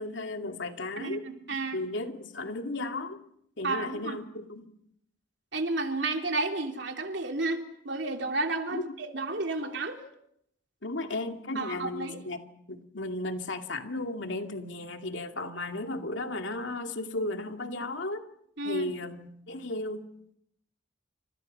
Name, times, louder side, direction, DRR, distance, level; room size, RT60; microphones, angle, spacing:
voice 1, 0.0-1.3 1.7-3.2 3.6-4.7 8.7-8.9 10.8-12.4 12.7-18.3 18.6-20.1, left 2 dB, 75° left, 5 dB, 2.5 m, -35 dB
voice 2, 1.0-1.8 3.6-4.2 5.5-10.0 11.5-12.2 18.6-18.9, right 2 dB, 65° right, 4 dB, 3.2 m, -32 dB
29.5 x 27.0 x 5.6 m, 0.74 s
head